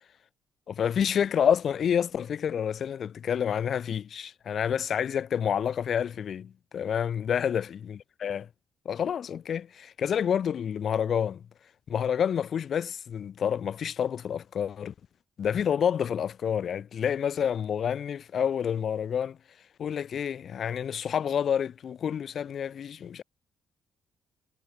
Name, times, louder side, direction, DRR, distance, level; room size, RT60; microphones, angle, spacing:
voice 1, 0.7-8.5 8.8-11.4 11.9-14.9 15.4-19.4 19.8-23.2, left 8 dB, 55° left, 4.1 m, -28 dB
cardioid pair, 90°, 0 cm